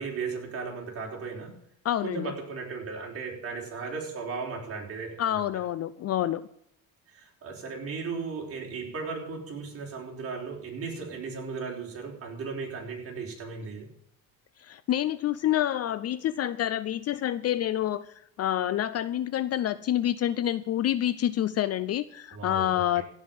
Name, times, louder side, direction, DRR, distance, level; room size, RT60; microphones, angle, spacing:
voice 1, 0.0-1.6 2.0-5.4 7.1-13.9 22.3-23.0, right 4 dB, 35° right, 0 dB, 4.5 m, -36 dB
voice 2, 1.8-2.3 5.2-6.4 14.6-23.0, left 12 dB, 40° left, 16 dB, 0.6 m, -28 dB
16.0 x 5.7 x 9.0 m, 0.69 s
cardioid pair, 115°, 39 cm